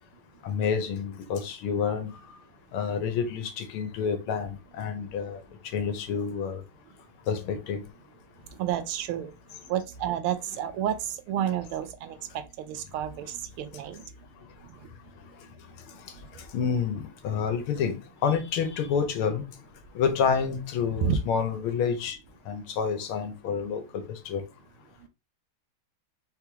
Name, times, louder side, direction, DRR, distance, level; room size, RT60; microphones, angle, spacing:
voice 1, 0.4-2.1 2.7-5.4 5.7-6.6 7.3-7.8 16.5-19.4 20.0-22.2 22.5-24.4, left 6 dB, 80° left, 1.7 m, -28 dB
voice 2, 8.6-9.3 9.7-12.2 12.6-14.0 21.0-21.2, right 10 dB, 85° right, 1.5 m, -30 dB
4.5 x 3.5 x 3.1 m
omnidirectional pair, 2.4 m